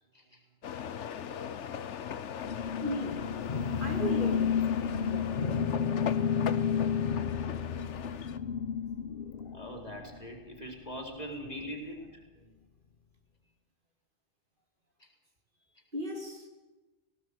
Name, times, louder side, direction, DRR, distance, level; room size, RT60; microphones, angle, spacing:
sound 1, 0.6-8.4, left 8 dB, 90° left, 1.2 m, -39 dB
voice 1, 1.2-3.3 3.8-4.6 7.9-8.2 11.5-11.8 12.4-12.6 15.9-16.5, equal, 45° right, 2 dB, 3.2 m, -39 dB
sound 2, 2.5-10.2, left 7 dB, 55° left, 1.1 m, -31 dB
voice 2, 9.5-12.2 15.0-15.1, equal, 35° left, 2 dB, 4.1 m, -42 dB
19.0 x 17.5 x 8.0 m, 1.1 s
omnidirectional pair, 1.2 m